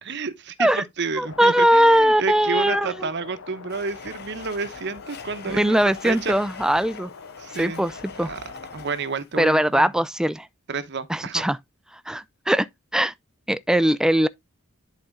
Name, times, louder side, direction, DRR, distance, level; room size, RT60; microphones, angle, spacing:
voice 1, 0.0-5.8 6.0-6.4 7.4-7.8 8.3-9.9 10.7-11.5, right 4 dB, 55° right, 1.0 m, -30 dB
sound 1, 1.2-8.9, left 5 dB, 65° left, 0.8 m, -43 dB
voice 2, 1.2-3.1 5.5-7.1 7.6-7.9 8.2-8.3 9.4-10.5 11.1-11.6 12.1-12.7 12.9-13.1 13.5-14.3, equal, 5° right, 0.4 m, -20 dB
Domestic sounds home sounds, 3.7-9.4, left 5 dB, 50° left, 1.1 m, -44 dB
10.5 x 4.3 x 3.6 m
head